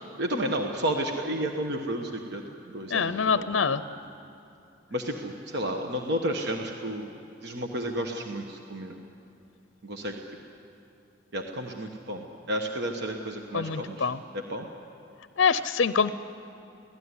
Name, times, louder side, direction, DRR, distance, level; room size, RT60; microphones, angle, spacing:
voice 1, 0.2-2.4 2.7-3.7 4.9-7.1 7.4-8.9 9.8-10.2 11.3-14.7, right 1 dB, 60° right, 3 dB, 1.2 m, -32 dB
voice 2, 2.9-3.8 13.5-14.2 15.4-16.1, left 5 dB, 65° left, 13 dB, 0.6 m, -25 dB
25.0 x 17.0 x 9.7 m, 2.7 s
head